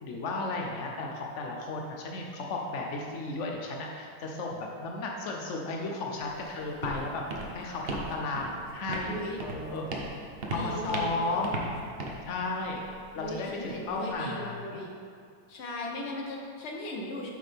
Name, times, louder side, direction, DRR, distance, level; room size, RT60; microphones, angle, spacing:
voice 1, 0.0-7.2 7.5-9.9 10.5-11.6 12.3-12.9 13.1-14.9, left 2 dB, 90° left, 0 dB, 0.6 m, -34 dB
Walk footsteps, 6.1-14.1, right 2 dB, 60° right, 0.6 m, -38 dB
voice 2, 9.1-9.4 10.5-11.6 13.1-14.9 15.5-17.3, left 1 dB, 50° left, -1 dB, 0.8 m, -38 dB
8.0 x 5.8 x 3.5 m, 2.3 s
omnidirectional pair, 2.2 m